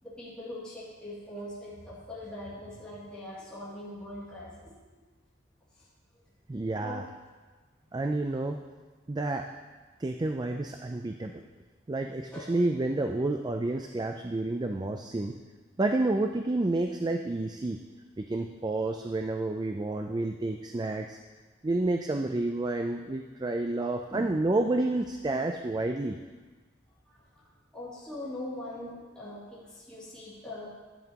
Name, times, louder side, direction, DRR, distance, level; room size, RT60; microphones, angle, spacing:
voice 1, 0.0-4.7 6.8-7.0 12.3-12.6 24.1-24.3 25.8-25.9 27.3-27.5 27.7-30.7, left 1 dB, 5° left, -10 dB, 2.6 m, -41 dB
voice 2, 6.5-7.1 7.9-8.6 9.1-9.5 10.0-11.4 11.9-15.3 15.8-17.8 18.2-21.2 21.6-26.2, right 2 dB, 20° right, 4 dB, 0.4 m, -30 dB
11.0 x 10.0 x 2.9 m, 1.3 s
head